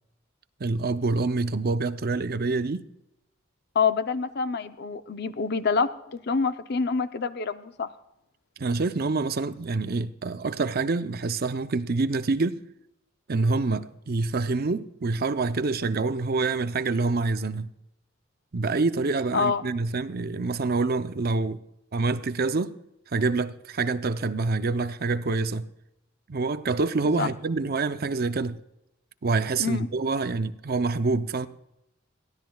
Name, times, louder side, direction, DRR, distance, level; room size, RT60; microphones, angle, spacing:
voice 1, 0.6-2.8 8.6-12.6 13.3-17.7 18.5-21.6 21.9-22.8 23.1-25.7 26.3-28.6 29.2-31.5, right 3 dB, 50° right, 0.6 m, -26 dB
voice 2, 3.7-7.9 19.3-19.7 27.2-27.3 29.6-29.9, left 5 dB, 55° left, 0.7 m, -26 dB
22.5 x 15.5 x 2.3 m
head